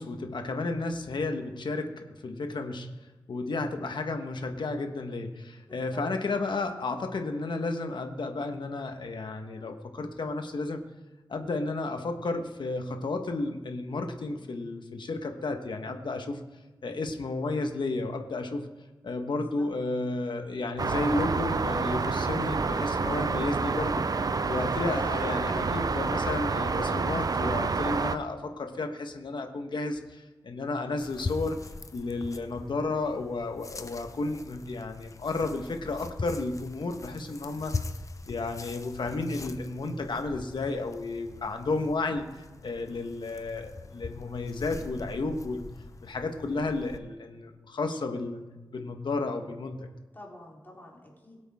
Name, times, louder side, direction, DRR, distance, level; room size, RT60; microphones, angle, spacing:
voice 1, 0.0-2.9 3.3-10.8 11.3-16.4 16.8-18.7 19.0-31.6 31.9-37.8 38.3-45.6 46.0-48.4 48.7-49.9, left 3 dB, 70° left, 5 dB, 1.4 m, -32 dB
voice 2, 5.7-6.1 19.3-19.7 50.1-51.4, left 1 dB, 25° left, -3 dB, 3.8 m, -48 dB
sound 1, 20.8-28.2, right 4 dB, 50° right, 0.6 m, -28 dB
sound 2, 31.0-47.0, left 3 dB, 40° left, 0.8 m, -42 dB
21.5 x 8.3 x 3.7 m, 1.2 s
wide cardioid pair, 80°, 8 cm